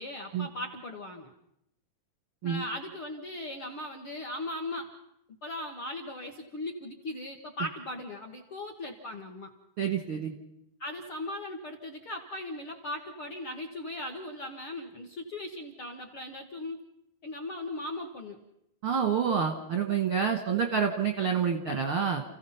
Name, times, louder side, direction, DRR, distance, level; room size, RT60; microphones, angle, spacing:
voice 1, 0.0-1.3 2.4-4.9 5.4-9.5 10.8-16.8 17.2-18.4, left 1 dB, 55° left, 1 dB, 1.5 m, -38 dB
voice 2, 9.8-10.3 18.8-22.2, right 7 dB, 60° right, 3 dB, 1.3 m, -28 dB
30.0 x 15.5 x 5.8 m, 0.79 s
omnidirectional pair, 4.4 m